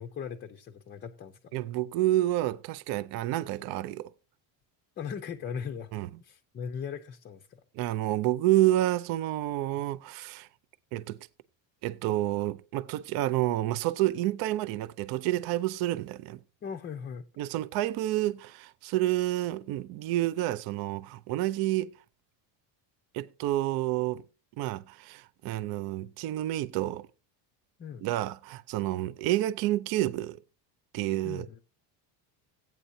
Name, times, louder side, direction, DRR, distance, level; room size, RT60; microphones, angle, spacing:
voice 1, 0.0-1.6 5.0-5.9 6.2-7.6 16.6-17.2 27.8-28.0 31.2-31.6, left 7 dB, 25° left, 0.5 m, -39 dB
voice 2, 1.5-4.1 5.9-6.1 7.8-10.5 10.9-11.2 11.8-16.4 17.4-21.9 23.1-24.2 24.6-27.1 28.0-30.4 30.9-31.5, right 15 dB, 50° right, 0.5 m, -29 dB
15.5 x 9.0 x 2.7 m
cardioid pair, 165°, 47 cm